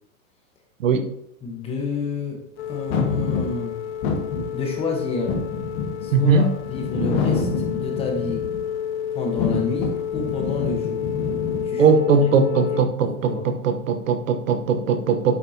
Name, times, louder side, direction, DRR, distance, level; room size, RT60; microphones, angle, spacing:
voice 1, 1.4-2.4 2.7-3.8 4.5-5.4 6.0-8.5 9.1-11.1 11.6-11.8 12.5-13.4, left 4 dB, 15° left, 1 dB, 1.1 m, -29 dB
sound 1, 2.6-12.8, left 9 dB, 55° left, 0.4 m, -30 dB
sound 2, 2.9-8.8 9.2-11.7, left 5 dB, 35° left, 1.4 m, -27 dB
voice 2, 6.1-6.5 11.8-15.3, right 5 dB, 60° right, 8 dB, 1.1 m, -19 dB
9.1 x 8.1 x 2.8 m, 0.76 s
hypercardioid pair, 155°, 43 cm